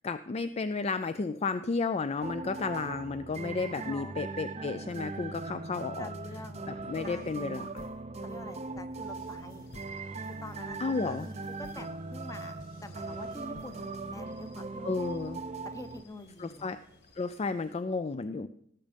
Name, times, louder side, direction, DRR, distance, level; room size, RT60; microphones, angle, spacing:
voice 1, 0.0-6.1 6.7-7.8 10.8-11.3 14.8-15.4 16.4-16.8 17.2-18.5, left 4 dB, 35° left, 12 dB, 0.4 m, -33 dB
sound 1, 2.2-16.0, right 3 dB, 35° right, 0.6 m, -40 dB
voice 2, 3.8-4.1 6.0-6.7 7.0-7.4 8.2-9.7 10.4-15.2 15.6-16.7, left 2 dB, 20° left, 10 dB, 0.9 m, -47 dB
sound 2, 6.8-14.1, left 3 dB, 85° left, 0.8 m, -56 dB
sound 3, 9.2-17.7, left 2 dB, 60° left, 2.1 m, -61 dB
17.5 x 7.3 x 5.2 m, 0.72 s
head